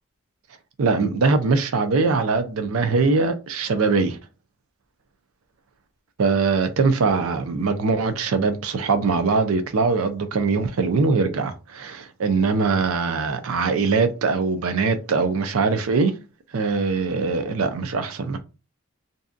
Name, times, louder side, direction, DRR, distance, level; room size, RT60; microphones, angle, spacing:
voice 1, 0.8-4.2 6.2-16.1 16.5-18.4, right 4 dB, 75° right, 0.5 m, -22 dB
2.6 x 2.2 x 2.4 m
head